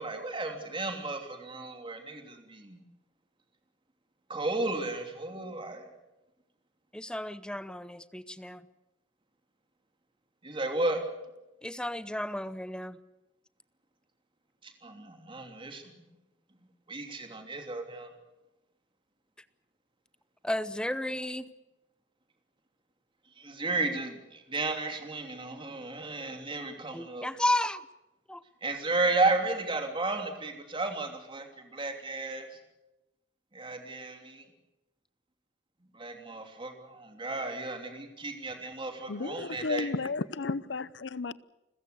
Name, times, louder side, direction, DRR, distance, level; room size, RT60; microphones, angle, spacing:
voice 1, 0.0-2.8 4.3-5.8 10.4-11.0 14.6-16.0 16.9-18.1 23.4-27.3 28.6-32.5 33.5-34.4 35.9-39.9, right 2 dB, 30° right, 3.0 m, -33 dB
voice 2, 6.9-8.6 11.6-13.0 20.4-21.5 26.9-27.8 28.3-28.4, left 1 dB, 5° left, 0.8 m, -32 dB
voice 3, 39.1-41.3, left 3 dB, 70° left, 0.7 m, -33 dB
29.5 x 15.0 x 8.0 m
head